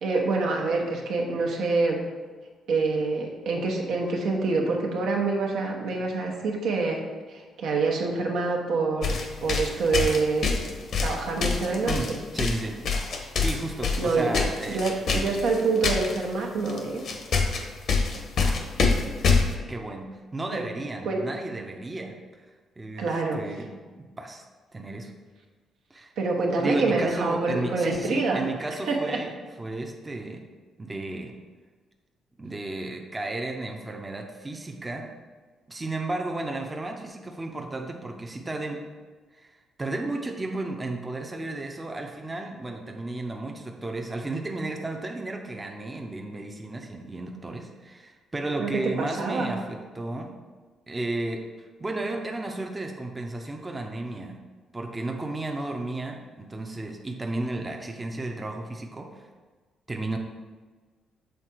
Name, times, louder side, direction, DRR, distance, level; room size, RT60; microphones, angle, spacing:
voice 1, 0.0-2.0 2.7-7.0 7.3-9.1 9.4-10.5 11.0-12.2 14.0-14.3 14.7-17.0 20.5-20.7 21.0-21.2 23.0-23.4 26.2-28.4 28.9-29.2 48.6-49.5, right 3 dB, 80° right, 0 dB, 1.1 m, -26 dB
sound 1, 9.0-16.2 16.7-16.8 17.0-19.5, left 4 dB, 60° left, 0.8 m, -25 dB
voice 2, 11.9-12.8 13.4-14.8 18.4-18.6 19.3-22.5 22.8-23.7 24.2-24.4 24.7-25.1 25.9-26.1 26.6-29.3 29.6-30.4 30.8-31.3 32.4-35.1 35.7-38.8 39.3-50.3 50.9-54.4 54.7-59.3 59.9-60.2, right 2 dB, 20° right, 2 dB, 0.6 m, -33 dB
6.5 x 3.6 x 4.5 m, 1.4 s
cardioid pair, 90°, 0 cm